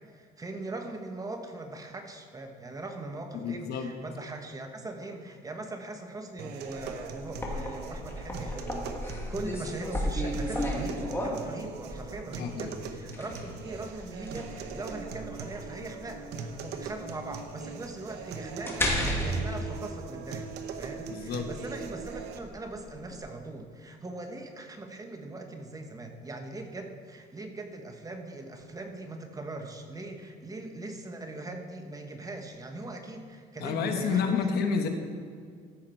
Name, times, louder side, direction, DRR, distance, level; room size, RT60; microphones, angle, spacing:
voice 1, 0.0-20.5 20.8-34.6, right 2 dB, 20° right, 5 dB, 1.1 m, -40 dB
voice 2, 3.3-3.9 12.4-12.7 21.1-21.5 33.6-34.9, left 6 dB, 70° left, 5 dB, 1.1 m, -29 dB
sound 1, 6.4-22.4, right 5 dB, 80° right, 0.9 m, -41 dB
sound 2, 6.7-23.2, equal, 15° left, 1.8 m, -35 dB
14.5 x 5.8 x 4.5 m, 2.1 s
cardioid pair, 110°, 17 cm